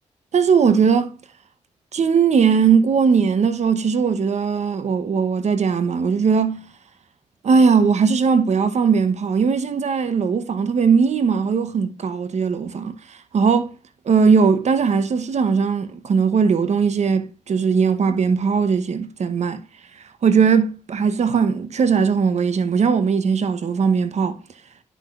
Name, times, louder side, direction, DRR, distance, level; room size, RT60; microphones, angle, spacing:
voice 1, 0.3-1.1 1.9-6.7 7.4-13.7 14.1-19.6 20.2-24.4, right 6 dB, 65° right, 1.0 m, -19 dB
10.5 x 5.9 x 2.5 m
cardioid pair, 65°, 13 cm